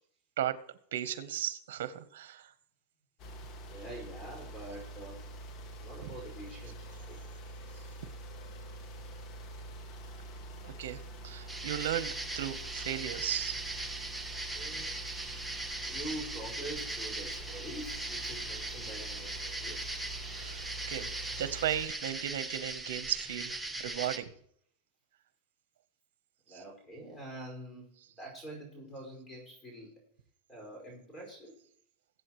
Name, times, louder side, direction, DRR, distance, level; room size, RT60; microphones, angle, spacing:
voice 1, 0.9-2.5 6.0-6.1 10.6-13.6 15.1-15.4 20.3-21.1 21.4-23.6 23.8-24.3, right 11 dB, 85° right, 13 dB, 0.9 m, -36 dB
sound 1, 3.2-21.8, right 1 dB, 40° left, 1.8 m, -46 dB
voice 2, 3.7-5.2 5.8-7.2 14.5-14.9 15.9-20.0 26.5-29.9 30.5-31.6, right 1 dB, 15° left, 0 dB, 5.3 m, -45 dB
sound 2, 11.5-24.2, right 2 dB, 5° right, 1.2 m, -39 dB
22.0 x 8.3 x 3.1 m, 0.67 s
supercardioid pair, 145°, 0 cm